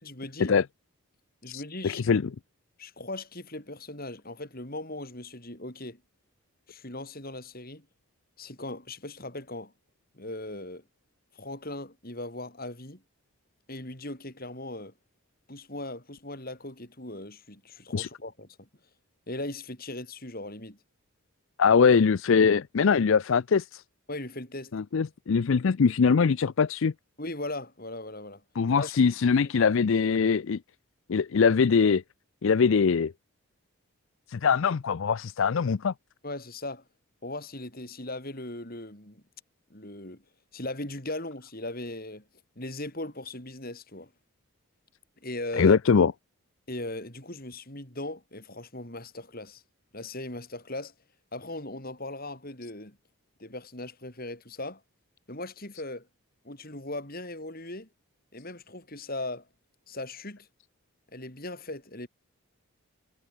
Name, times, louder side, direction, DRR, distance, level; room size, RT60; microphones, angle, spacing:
voice 1, 0.0-0.6 1.4-2.0 2.8-6.0 6.7-7.9 8.4-9.7 10.1-10.8 11.3-13.0 13.7-14.9 15.5-18.7 19.3-20.8 24.1-24.7 27.2-28.4 28.7-28.9 29.4-29.5 36.2-36.8 37.2-39.2 39.7-40.2 40.5-42.2 42.6-44.1 45.2-45.8 46.7-49.6 49.9-50.9 51.3-53.0 53.4-54.8 55.3-56.1 56.4-57.9 58.3-59.5 59.9-60.5 61.1-62.1, left 2 dB, 40° left, 5.0 m, -38 dB
voice 2, 1.5-2.2 17.9-18.1 21.6-23.8 24.7-26.9 28.6-30.6 31.1-32.0 32.4-33.1 34.3-35.9 45.6-46.1, left 5 dB, 60° left, 0.4 m, -22 dB
head